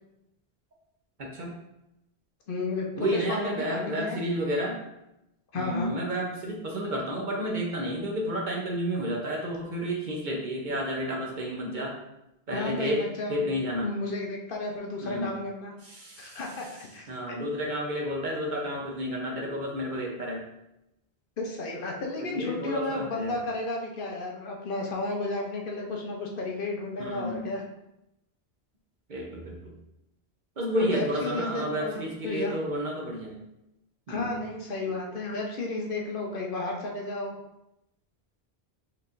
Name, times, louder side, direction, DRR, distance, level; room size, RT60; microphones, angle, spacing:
voice 1, 1.2-1.5 2.9-4.8 5.5-11.9 12.5-13.0 13.3-13.8 15.0-15.3 15.8-16.4 17.1-20.4 22.2-23.4 27.0-27.5 29.1-29.7 30.6-33.4 34.1-34.4, equal, 50° right, -2 dB, 0.8 m, -31 dB
voice 2, 2.5-4.2 5.5-5.9 12.5-13.5 13.8-15.7 16.2-17.1 21.4-27.6 30.7-32.5 34.1-37.3, left 2 dB, 60° left, 0 dB, 0.7 m, -33 dB
4.6 x 3.3 x 2.5 m, 0.88 s
omnidirectional pair, 1.1 m